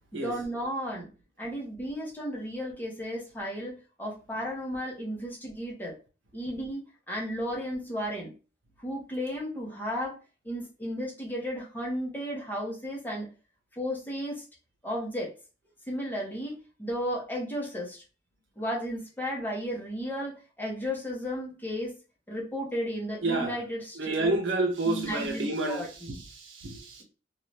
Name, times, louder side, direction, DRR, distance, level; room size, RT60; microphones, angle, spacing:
voice 1, 0.1-1.1 1.4-6.0 6.3-8.3 8.8-10.2 10.4-13.3 13.7-14.4 14.8-15.3 15.9-18.0 18.6-22.0 22.3-24.3 24.9-26.2, equal, 10° left, 0.9 m, -34 dB
voice 2, 23.2-23.6 24.0-27.0, right 2 dB, 85° right, 0.8 m, -30 dB
2.6 x 2.4 x 3.2 m
head